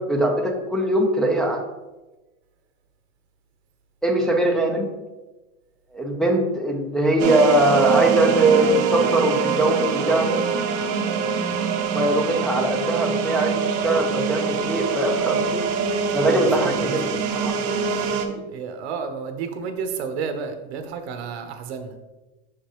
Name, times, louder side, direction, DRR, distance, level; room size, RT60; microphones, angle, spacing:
voice 1, 0.0-1.6 4.0-4.9 5.9-10.4 11.9-15.6 16.1-17.0 17.3-17.6 18.3-18.4, right 1 dB, ahead, -1 dB, 0.6 m, -21 dB
sound 1, 7.2-18.3, right 5 dB, 50° right, 0.8 m, -24 dB
voice 2, 16.2-17.2 18.5-21.9, right 5 dB, 90° right, 7 dB, 0.9 m, -31 dB
6.1 x 5.1 x 3.0 m, 1.1 s
supercardioid pair, 140°, 32 cm